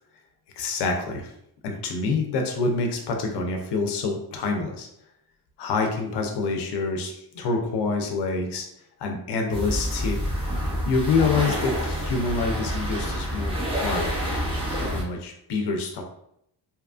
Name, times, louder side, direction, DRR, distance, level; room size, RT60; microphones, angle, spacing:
voice 1, 0.6-1.3 1.6-4.9 5.6-8.7 9.0-10.2 10.8-14.0 14.8-16.0, left 4 dB, 80° left, 3 dB, 0.6 m, -26 dB
sound 1, 9.5-15.0, equal, 15° right, 0.7 m, -28 dB
2.8 x 2.3 x 2.4 m, 0.74 s
cardioid pair, 120°, 40 cm